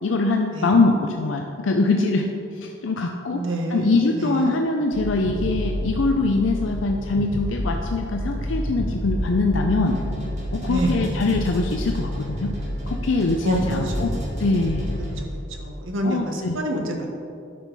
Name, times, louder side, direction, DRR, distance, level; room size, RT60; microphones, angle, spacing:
voice 1, 0.0-2.3 2.6-3.4 3.7-10.0 10.5-12.5 12.9-14.9 16.0-16.6, left 3 dB, 70° left, 3 dB, 0.5 m, -23 dB
voice 2, 3.3-3.9 4.1-4.6 10.7-11.0 13.4-13.6 13.9-14.2 15.2-15.3 15.6-17.1, right 1 dB, 75° right, 1 dB, 1.3 m, -27 dB
sound 1, 4.9-15.2, equal, 45° left, 1.5 m, -29 dB
sound 2, 9.9-15.4, equal, 35° right, 2.0 m, -37 dB
11.0 x 6.2 x 4.1 m, 2.6 s
head